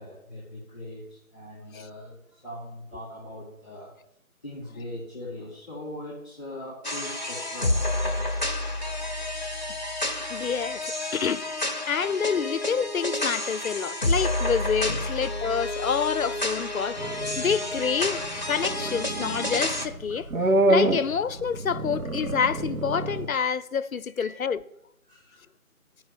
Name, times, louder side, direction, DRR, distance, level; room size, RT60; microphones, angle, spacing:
voice 1, 0.0-3.9 4.4-8.7 12.0-12.2 14.8-15.1 24.2-24.4 25.1-25.4, left 1 dB, 5° right, 1.1 m, -41 dB
sound 1, 6.8-19.9, left 1 dB, 30° left, 0.6 m, -30 dB
voice 2, 10.3-20.3 20.7-24.6, left 6 dB, 70° left, 0.6 m, -28 dB
sound 2, 17.0-23.3, right 2 dB, 70° right, 1.1 m, -28 dB
9.0 x 5.0 x 7.8 m
figure-of-eight pair, 170°, 44 cm